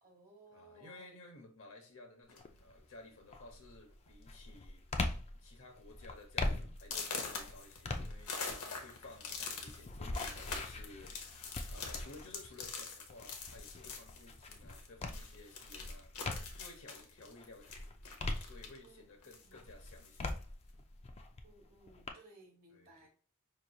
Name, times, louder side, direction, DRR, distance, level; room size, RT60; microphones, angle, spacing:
voice 1, 0.0-1.4 18.8-19.7 21.4-23.1, right 2 dB, 40° right, 1.2 m, -61 dB
voice 2, 0.5-4.9 5.4-8.3 8.6-11.2 11.7-16.1 16.5-18.0 18.4-20.4 22.7-23.1, left 2 dB, 65° left, 1.0 m, -55 dB
sound 1, 2.3-2.6 3.4-3.5 3.9-4.2 4.5-4.9 5.4-5.5 5.9-6.0 6.8-14.9 15.1-18.9 19.2-20.3, left 5 dB, 90° left, 0.9 m, -44 dB
sound 2, 2.4-2.8 3.3-16.8 17.2-19.1 19.5-22.1, left 2 dB, 25° left, 0.4 m, -42 dB
5.5 x 3.1 x 2.3 m
head